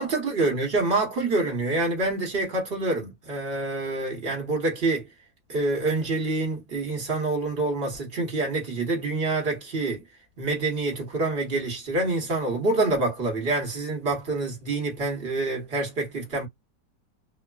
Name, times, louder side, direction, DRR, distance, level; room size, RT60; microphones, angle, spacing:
voice 1, 0.0-5.0 5.5-10.0 10.4-16.5, right 2 dB, 40° right, 1.1 m, -26 dB
3.0 x 2.2 x 2.3 m
omnidirectional pair, 1.9 m